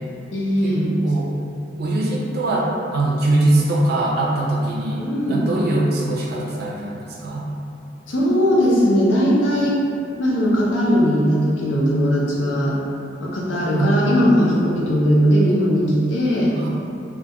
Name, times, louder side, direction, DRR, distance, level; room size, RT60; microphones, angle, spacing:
voice 1, 0.3-0.9 5.0-5.5 8.1-9.8 10.2-12.8 13.2-16.5, equal, 85° left, -5 dB, 0.5 m, -19 dB
voice 2, 1.8-7.5 13.7-13.9 16.6-16.7, right 2 dB, 60° right, -3 dB, 0.4 m, -22 dB
2.2 x 2.1 x 2.8 m, 2.6 s
head